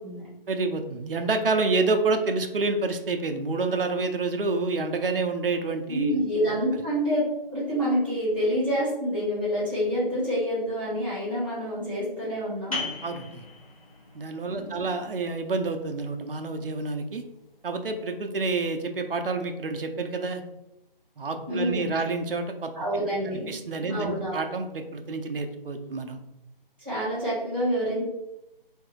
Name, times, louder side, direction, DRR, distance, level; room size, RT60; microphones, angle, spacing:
voice 1, 0.5-6.1 13.0-13.4 14.1-17.2 17.6-20.4 21.2-22.7 23.5-26.2, right 3 dB, 70° right, 6 dB, 0.6 m, -28 dB
voice 2, 5.9-7.2 7.5-12.8 14.5-14.8 21.5-21.9 22.7-23.5 23.9-24.4 26.8-28.0, equal, 10° right, -14 dB, 1.0 m, -27 dB
sound 1, 12.7-18.1, left 4 dB, 40° left, 0.9 m, -40 dB
2.8 x 2.7 x 3.7 m, 0.89 s
figure-of-eight pair, 175°, 29 cm